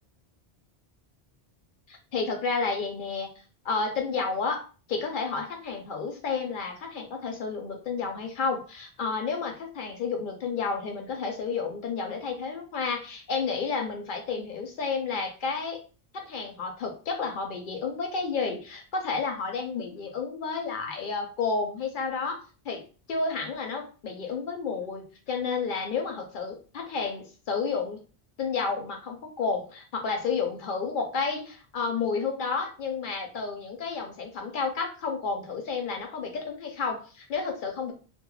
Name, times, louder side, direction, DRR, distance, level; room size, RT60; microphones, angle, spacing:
voice 1, 1.9-3.3 3.6-4.6 4.9-15.8 16.1-22.8 23.1-28.0 28.4-37.9, left 4 dB, 60° left, 3 dB, 0.6 m, -31 dB
2.2 x 2.0 x 3.0 m, 0.36 s
omnidirectional pair, 1.0 m